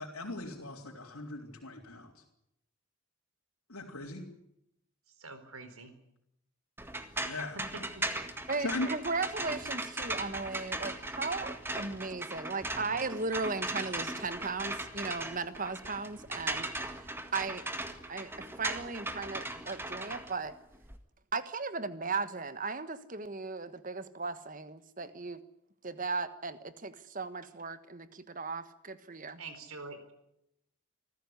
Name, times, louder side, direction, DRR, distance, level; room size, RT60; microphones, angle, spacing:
voice 1, 0.0-2.2 3.7-4.2 7.2-7.6 8.6-8.9, left 2 dB, 75° left, -3 dB, 3.9 m, -38 dB
voice 2, 5.2-5.9 7.3-7.4 8.0-8.1 29.4-30.1, right 3 dB, 75° right, 10 dB, 4.2 m, -46 dB
sound 1, 6.8-21.0, right 2 dB, 10° right, 1.8 m, -38 dB
voice 3, 8.5-16.7 17.0-17.6 18.1-20.5 21.3-25.4 25.8-29.4, right 4 dB, 35° right, 12 dB, 1.4 m, -37 dB
26.0 x 15.0 x 9.7 m, 0.80 s
head